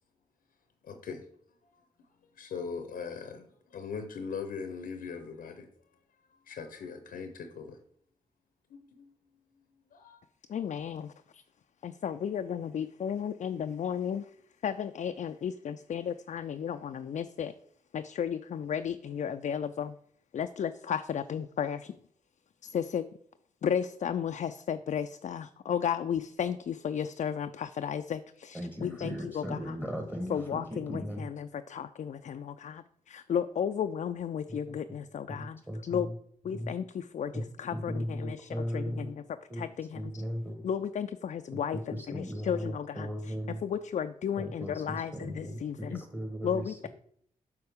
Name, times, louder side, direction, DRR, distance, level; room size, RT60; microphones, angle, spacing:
voice 1, 0.8-1.2 2.4-5.7 6.5-7.8 8.7-9.1 9.9-10.2, left 5 dB, 85° left, 7 dB, 0.7 m, -40 dB
voice 2, 10.5-11.4 11.8-14.3 14.6-17.5 17.9-20.0 20.3-22.0 22.6-23.1 23.6-29.8 30.3-36.1 36.4-39.2 39.5-40.2 40.6-46.0 46.4-46.9, left 8 dB, 60° left, 8 dB, 0.4 m, -34 dB
voice 3, 28.5-31.3 34.5-34.8 35.3-36.1 36.5-36.7 37.3-37.4 37.7-39.1 39.5-39.6 39.9-40.7 41.5-43.6 44.4-46.8, equal, 10° right, 4 dB, 1.3 m, -37 dB
7.8 x 4.7 x 3.6 m, 0.64 s
cardioid pair, 50°, 14 cm